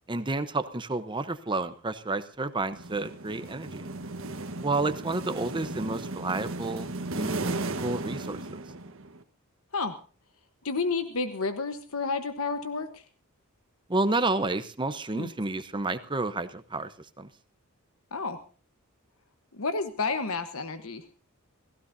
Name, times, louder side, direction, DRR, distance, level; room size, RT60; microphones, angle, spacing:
voice 1, 0.1-3.9 4.6-8.6 13.9-17.3, right 2 dB, 20° right, 11 dB, 0.9 m, -30 dB
sound 1, 2.7-9.2, right 2 dB, 65° right, 1.4 m, -35 dB
voice 2, 10.6-13.0 15.1-15.3 18.1-18.4 19.6-21.0, left 4 dB, 70° left, 9 dB, 1.2 m, -30 dB
30.0 x 16.0 x 2.7 m, 0.38 s
head